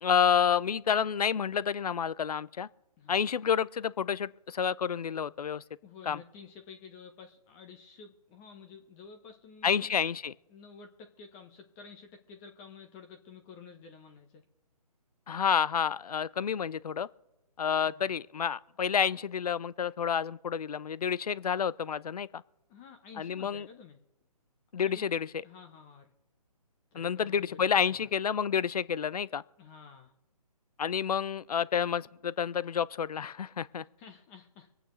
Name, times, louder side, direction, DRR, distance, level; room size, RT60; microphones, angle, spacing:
voice 1, 0.0-2.7 3.1-5.6 6.1-6.2 9.6-10.3 15.3-17.1 17.6-22.4 23.2-23.7 24.7-25.3 26.9-29.4 30.8-33.8, left 7 dB, 75° left, 0.5 m, -29 dB
voice 2, 5.8-9.9 10.5-14.4 17.9-18.1 22.7-24.0 24.8-25.0 25.4-26.1 26.9-28.1 29.6-30.1 34.0-34.7, left 5 dB, 15° left, 0.8 m, -51 dB
25.0 x 9.0 x 3.1 m
hypercardioid pair, 150°, 20 cm